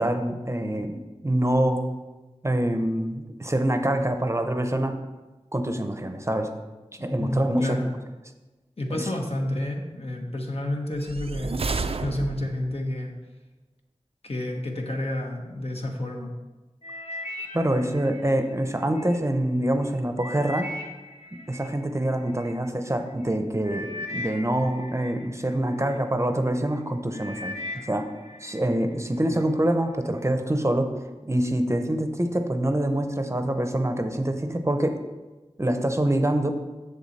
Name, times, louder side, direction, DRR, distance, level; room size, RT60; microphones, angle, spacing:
voice 1, 0.0-1.8 2.4-5.0 5.5-6.5 7.0-7.9 8.9-9.1 17.5-20.7 21.5-28.1 28.4-30.9 31.2-35.0 35.6-36.5, right 1 dB, 25° right, 6 dB, 0.7 m, -25 dB
voice 2, 7.1-7.9 8.8-11.7 11.9-13.1 14.2-16.3, left 1 dB, 60° left, 1 dB, 1.2 m, -30 dB
sound 1, 11.0-12.8, right 3 dB, 60° right, 0.4 m, -31 dB
sound 2, 16.8-19.2 19.7-22.5 23.2-23.4 23.6-26.0 26.5-26.8 27.1-28.6 29.0-29.4 30.1-30.2, left 1 dB, 85° left, 1.2 m, -39 dB
7.2 x 7.0 x 4.1 m, 1.2 s
wide cardioid pair, 55°, 11 cm